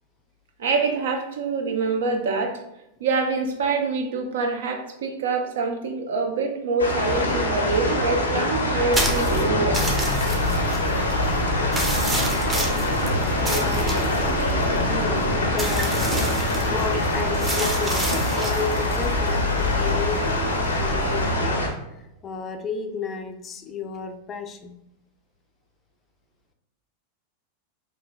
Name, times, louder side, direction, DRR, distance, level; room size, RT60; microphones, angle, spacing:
voice 1, 0.6-2.6 3.0-9.8, right 4 dB, 70° right, 4 dB, 0.4 m, -25 dB
sound 1, 6.8-21.7, left 1 dB, 85° left, 0.5 m, -24 dB
sound 2, 8.9-21.4, left 1 dB, 15° right, 0.6 m, -29 dB
sound 3, 11.9-17.6, left 1 dB, 45° right, 1.3 m, -34 dB
voice 2, 13.4-13.9 14.9-16.1 16.7-20.5 20.7-24.8, left 5 dB, 30° left, 6 dB, 0.3 m, -33 dB
3.1 x 2.4 x 2.2 m, 0.86 s
hypercardioid pair, 95°, 0 cm